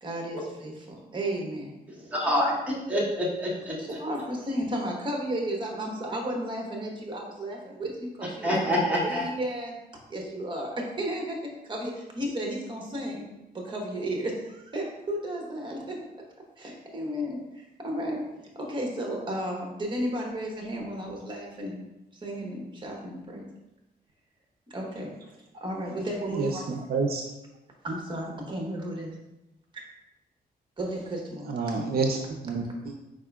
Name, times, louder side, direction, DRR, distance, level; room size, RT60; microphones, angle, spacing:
voice 1, 0.0-1.7 3.8-9.8 10.1-11.4 11.7-13.2 13.5-16.0 16.6-18.2 18.5-21.9 22.1-23.5 24.7-25.1 25.5-26.8 27.8-29.1 30.8-31.5, right 1 dB, 30° right, 0 dB, 1.1 m, -33 dB
voice 2, 2.0-3.8 8.4-9.3, equal, 10° right, -6 dB, 1.4 m, -26 dB
voice 3, 26.4-27.2 31.5-32.2 32.4-32.9, right 4 dB, 65° right, 4 dB, 0.5 m, -28 dB
4.8 x 4.6 x 2.3 m, 0.95 s
cardioid pair, 115°, 17 cm